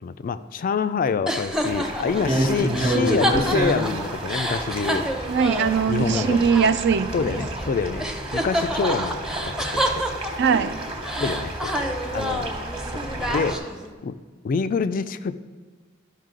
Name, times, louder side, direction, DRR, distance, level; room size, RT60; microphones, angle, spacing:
voice 1, 0.0-5.1 5.9-6.4 7.1-8.1 8.3-9.2 9.4-9.9 11.2-12.5 12.9-13.6 14.0-14.2 14.4-15.4, left 5 dB, 45° left, 13 dB, 0.3 m, -26 dB
sound 1, 1.3-7.7 8.0-10.7 11.0-13.9, equal, 5° right, 0.6 m, -29 dB
sound 2, 1.7-13.6, right 1 dB, 25° right, 1.2 m, -29 dB
voice 2, 5.3-7.4 10.4-10.7, right 6 dB, 55° right, 12 dB, 0.4 m, -21 dB
12.0 x 5.5 x 3.7 m, 1.4 s
head